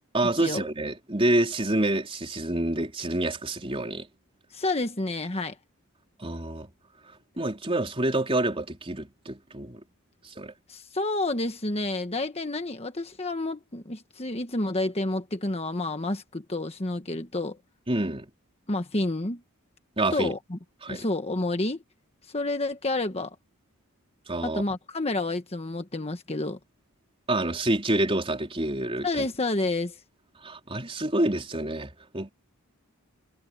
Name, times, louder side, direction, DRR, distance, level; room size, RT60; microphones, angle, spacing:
voice 1, 0.1-4.1 6.2-6.7 7.4-9.8 10.2-10.5 17.9-18.3 20.0-20.3 20.8-21.1 24.3-24.6 27.3-29.3 30.4-32.3, right 1 dB, 25° right, 4.1 m, -27 dB
voice 2, 4.5-5.6 10.7-17.6 18.7-19.4 20.1-20.6 20.9-21.8 22.3-23.4 24.4-26.6 29.0-30.0, left 2 dB, 30° left, 1.3 m, -29 dB
head